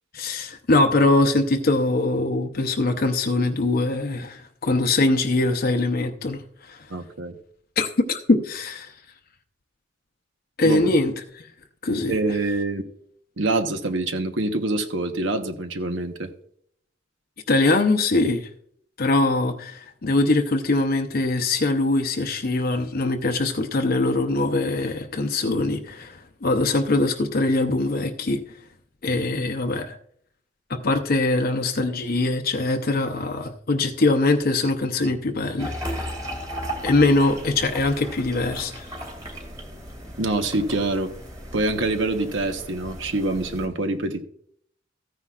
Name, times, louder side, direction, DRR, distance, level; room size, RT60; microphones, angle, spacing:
voice 1, 0.1-6.4 6.7-6.8 7.8-8.9 10.6-11.1 11.8-12.2 17.5-18.5 19.0-28.4 29.0-30.0 30.7-36.1 36.8-38.9, left 2 dB, 50° left, 0.7 m, -22 dB
voice 2, 6.9-7.3 10.6-11.0 12.1-12.8 13.4-16.3 40.2-41.1 41.5-44.2, right 2 dB, 65° right, 1.0 m, -25 dB
sound 1, 35.6-43.7, equal, 20° right, 2.2 m, -36 dB
14.5 x 9.7 x 2.4 m
head